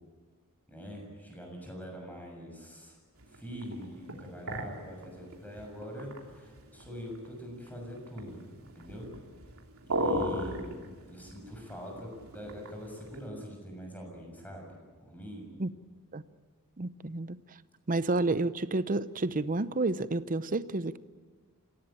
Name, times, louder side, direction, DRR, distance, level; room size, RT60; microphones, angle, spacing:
voice 1, 0.7-3.0 3.3-9.1 9.8-14.7 15.0-15.5, equal, 5° left, 6.8 m, -44 dB
sound 1, 3.2-13.3, right 1 dB, 70° right, 3.3 m, -38 dB
voice 2, 16.8-17.4 17.9-21.0, right 2 dB, 40° right, 0.7 m, -30 dB
26.5 x 17.0 x 8.8 m
head